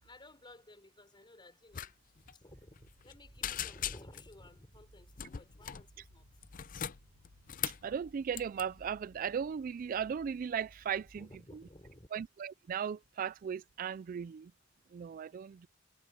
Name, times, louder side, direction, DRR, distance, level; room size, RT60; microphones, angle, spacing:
voice 1, 0.0-6.3 11.2-12.1, left 1 dB, 25° left, 4.8 m, -56 dB
sound 1, 1.7-1.9 2.2-2.3 2.7-3.1 3.4-4.3 5.2-5.9 6.4-7.9 8.3-8.6, left 10 dB, 45° left, 0.5 m, -39 dB
sound 2, 2.5-11.3, right 1 dB, 60° right, 1.5 m, -62 dB
sound 3, 3.6-9.4, left 2 dB, 85° left, 0.9 m, -65 dB
voice 2, 7.8-11.3 12.1-14.5 14.9-15.7, right 7 dB, 45° right, 0.3 m, -37 dB
head